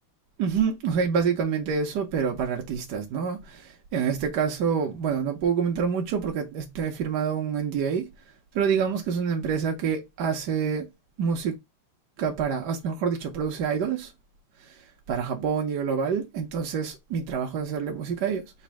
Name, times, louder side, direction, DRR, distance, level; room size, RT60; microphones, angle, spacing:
voice 1, 0.4-8.1 8.5-10.9 11.2-11.5 12.2-14.1 14.6-14.7 15.1-18.4, right 6 dB, 65° right, 1.1 m, -27 dB
4.1 x 2.4 x 4.5 m
omnidirectional pair, 2.4 m